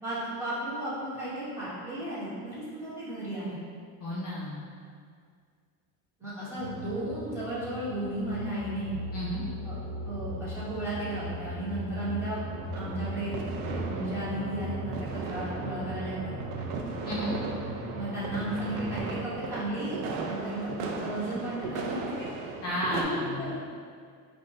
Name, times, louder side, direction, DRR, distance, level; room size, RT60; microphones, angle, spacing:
voice 1, 0.0-3.5 6.2-9.0 9.6-9.8 10.0-12.4 12.7-13.4 13.8-16.3 17.9-22.0 22.9-23.6, right 1 dB, 5° right, -12 dB, 1.2 m, -34 dB
voice 2, 4.0-4.6 9.1-9.4 17.1-17.4 22.6-23.6, left 1 dB, 35° left, -7 dB, 0.5 m, -32 dB
sound 1, 6.6-19.1, right 1 dB, 50° right, 1.1 m, -38 dB
sound 2, 12.5-23.0, right 4 dB, 75° right, 0.6 m, -37 dB
4.9 x 2.3 x 2.9 m, 2.1 s
cardioid pair, 145°, 40 cm